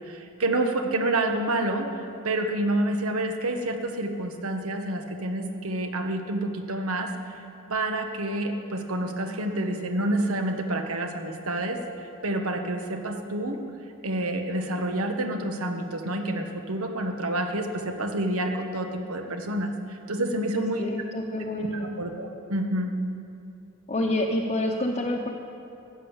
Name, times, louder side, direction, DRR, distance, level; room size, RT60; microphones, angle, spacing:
voice 1, 0.0-1.9 2.2-7.1 7.7-11.8 12.2-13.6 14.0-20.8 21.7-22.9, right 1 dB, 90° right, 4 dB, 1.3 m, -28 dB
voice 2, 20.5-21.9 23.9-25.3, left 1 dB, 30° left, -3 dB, 0.9 m, -28 dB
14.5 x 9.0 x 7.2 m, 2.6 s
head